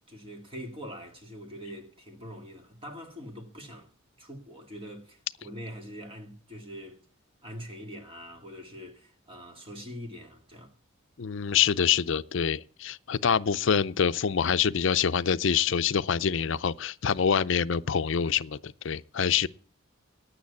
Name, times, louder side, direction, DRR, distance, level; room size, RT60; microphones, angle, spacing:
voice 1, 0.1-3.9 4.2-7.1 7.4-10.7 19.1-19.3, equal, 25° right, 2.1 m, -43 dB
voice 2, 11.2-19.5, left 7 dB, 60° left, 0.5 m, -26 dB
10.0 x 9.0 x 8.4 m
head